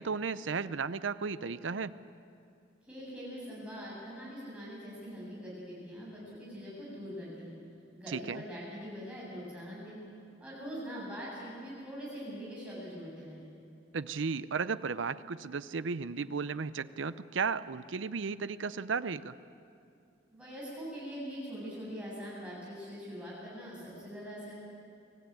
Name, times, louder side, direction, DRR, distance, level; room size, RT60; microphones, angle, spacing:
voice 1, 0.0-1.9 8.1-8.4 13.9-19.3, right 5 dB, 85° right, 14 dB, 0.6 m, -34 dB
voice 2, 2.9-7.6 7.9-10.0 10.4-13.5 20.3-24.5, equal, 5° right, -6 dB, 7.8 m, -43 dB
24.0 x 15.5 x 9.1 m, 2.5 s
head